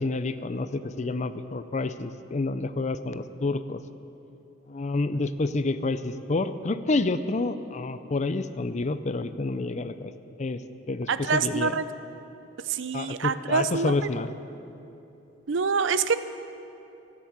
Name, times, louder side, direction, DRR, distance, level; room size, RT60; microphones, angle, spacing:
voice 1, 0.0-3.8 4.7-10.1 10.4-10.6 10.9-11.7 12.9-14.3, left 3 dB, 35° left, 12 dB, 0.5 m, -29 dB
voice 2, 11.1-11.8 12.7-13.9 15.5-16.1, right 5 dB, 65° right, 13 dB, 0.5 m, -25 dB
14.5 x 10.0 x 7.4 m, 2.8 s
head